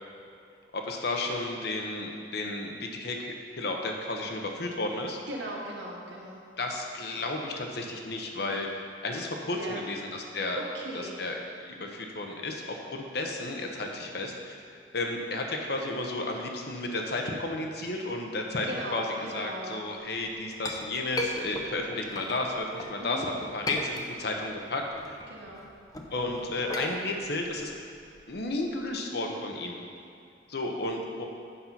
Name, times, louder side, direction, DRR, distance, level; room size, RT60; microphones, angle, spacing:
voice 1, 0.7-5.2 6.6-10.6 10.9-14.6 14.9-19.0 19.3-24.8 25.1-25.2 26.1-27.7 28.3-29.8 30.5-31.2, left 2 dB, 60° left, 2 dB, 0.9 m, -33 dB
voice 2, 5.3-6.4 9.5-9.8 10.5-11.2 18.6-19.8 23.0-23.2 25.3-25.6, right 1 dB, 70° right, -3 dB, 1.6 m, -38 dB
Chink clink, 20.1-23.0 23.4-24.5 24.8-28.9, left 2 dB, 20° left, 0.7 m, -37 dB
8.5 x 5.6 x 5.8 m, 2.5 s
head